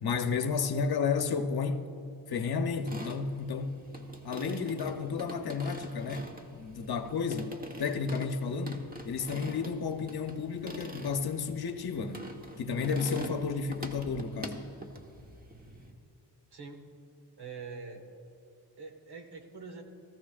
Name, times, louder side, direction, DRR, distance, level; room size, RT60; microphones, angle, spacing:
voice 1, 0.0-1.8 2.3-3.8 4.2-7.5 7.8-14.6, left 5 dB, 60° left, 0.9 m, -32 dB
sound 1, 2.7-15.9, right 1 dB, 20° right, 1.2 m, -44 dB
voice 2, 16.5-16.8 17.4-18.0 18.8-19.8, right 4 dB, 65° right, 1.7 m, -44 dB
17.5 x 14.5 x 2.5 m
cardioid pair, 90°, 42 cm